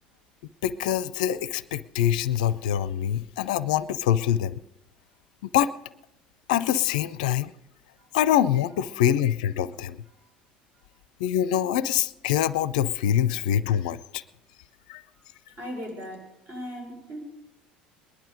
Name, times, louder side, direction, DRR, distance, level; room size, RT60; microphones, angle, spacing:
voice 1, 0.6-4.6 5.5-5.7 6.5-7.5 8.1-10.0 11.2-14.2 14.9-15.0, left 11 dB, 65° left, 17 dB, 0.4 m, -24 dB
voice 2, 15.6-17.2, equal, 40° right, 1 dB, 5.1 m, -38 dB
19.5 x 11.0 x 5.1 m, 0.86 s
figure-of-eight pair, 65°, 5 cm